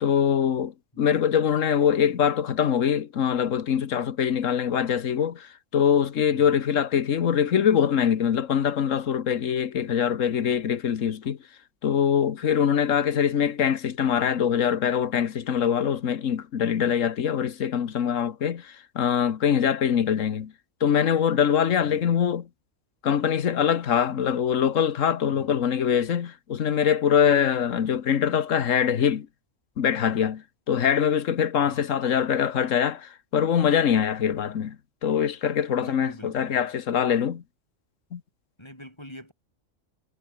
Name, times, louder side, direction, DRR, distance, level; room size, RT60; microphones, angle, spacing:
voice 1, 0.0-11.4 11.8-20.5 20.8-22.4 23.0-29.3 29.8-34.8 35.0-37.4 38.1-38.2, left 8 dB, 85° left, 1.5 m, -23 dB
voice 2, 21.7-22.3 25.3-25.7 31.6-31.9 35.7-36.7 38.6-39.3, equal, 20° left, 7.2 m, -46 dB
omnidirectional pair, 1.3 m